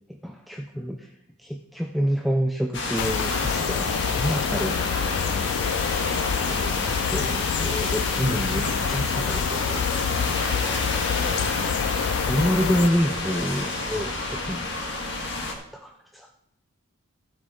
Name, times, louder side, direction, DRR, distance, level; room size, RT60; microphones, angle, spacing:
voice 1, 0.2-1.1 1.4-4.7 6.5-9.8 12.2-14.7 15.7-16.3, equal, ahead, 2 dB, 0.5 m, -28 dB
sound 1, 2.7-15.5, left 2 dB, 55° left, 1.7 m, -29 dB
sound 2, 3.0-12.9, left 9 dB, 85° left, 0.3 m, -28 dB
voice 2, 4.3-5.4 10.9-11.8, equal, 30° left, -3 dB, 2.9 m, -42 dB
15.0 x 7.7 x 3.8 m, 0.80 s
head